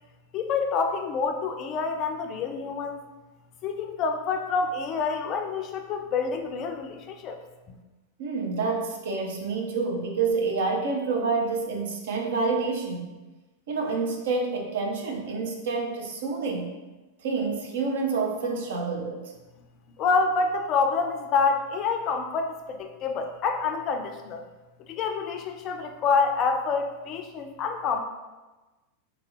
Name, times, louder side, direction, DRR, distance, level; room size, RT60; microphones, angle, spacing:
voice 1, 0.3-3.0 3.6-7.4 7.7-7.8 20.0-24.4 24.9-28.0, left 5 dB, 35° left, 5 dB, 0.4 m, -27 dB
voice 2, 8.2-13.1 13.7-16.7 17.2-19.3, right 4 dB, 55° right, 1 dB, 0.6 m, -28 dB
3.8 x 2.8 x 3.0 m, 1.2 s
figure-of-eight pair, 90°, 0 cm